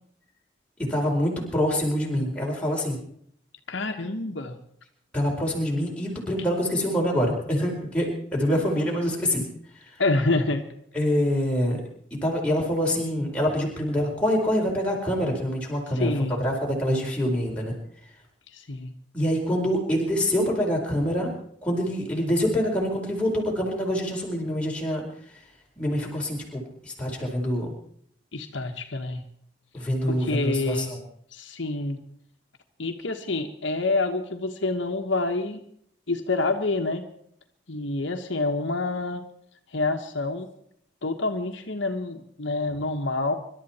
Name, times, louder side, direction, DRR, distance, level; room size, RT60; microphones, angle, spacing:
voice 1, 0.9-3.0 5.1-9.4 10.9-11.8 12.2-16.1 16.4-17.7 19.1-25.0 25.8-27.7 29.7-31.0, equal, 5° left, -3 dB, 4.3 m, -25 dB
voice 2, 3.7-4.6 10.0-10.6 15.9-16.4 18.5-18.9 28.3-29.2 30.2-30.9 31.3-32.0 32.8-35.6 36.1-37.1 37.7-39.2 39.7-40.5 41.0-43.3, left 2 dB, 75° left, 4 dB, 1.4 m, -27 dB
25.5 x 12.5 x 4.4 m, 0.67 s
head